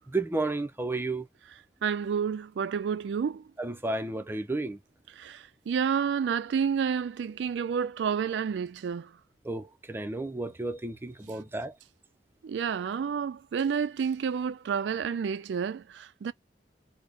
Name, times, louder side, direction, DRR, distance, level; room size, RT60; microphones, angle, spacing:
voice 1, 0.1-1.2 3.6-4.8 9.4-11.7, right 2 dB, 15° right, 0.5 m, -32 dB
voice 2, 1.8-3.4 5.2-9.1 12.4-16.3, right 7 dB, 85° right, 0.3 m, -30 dB
3.8 x 2.1 x 3.5 m
head